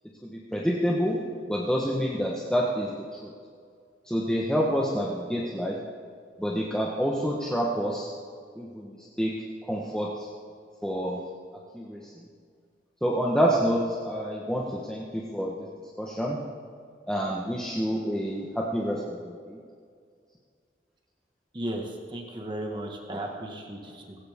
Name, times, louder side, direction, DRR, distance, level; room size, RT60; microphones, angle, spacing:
voice 1, 0.2-1.2 1.5-3.3 4.0-5.8 6.4-8.1 8.6-9.3 9.7-10.3 10.8-11.2 11.7-12.3 13.0-15.7 16.0-16.4 17.1-19.6 23.1-23.2, equal, 5° left, -4 dB, 1.3 m, -28 dB
voice 2, 21.5-24.2, right 1 dB, 25° right, 2 dB, 1.8 m, -35 dB
18.0 x 17.5 x 3.7 m, 2.1 s
head